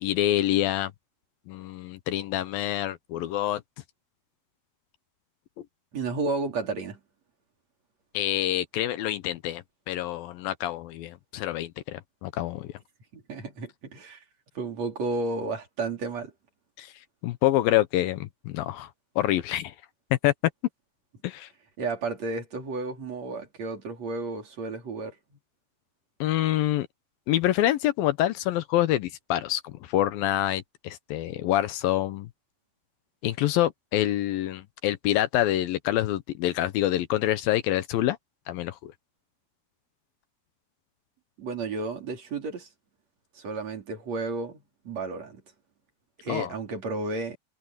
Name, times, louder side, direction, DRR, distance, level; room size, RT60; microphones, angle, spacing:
voice 1, 0.0-0.9 1.5-3.6 8.1-12.7 16.8-16.9 17.2-18.9 19.2-19.7 20.1-20.3 21.2-21.5 26.2-26.9 27.3-32.3 33.2-38.2 38.5-38.9 46.3-46.5, left 13 dB, 75° left, 2.3 m, -26 dB
voice 2, 5.9-7.0 13.1-14.2 14.5-16.3 21.8-25.4 41.4-42.7 43.4-45.4 46.2-47.4, right 3 dB, 40° right, 4.5 m, -32 dB
omnidirectional pair, 4.8 m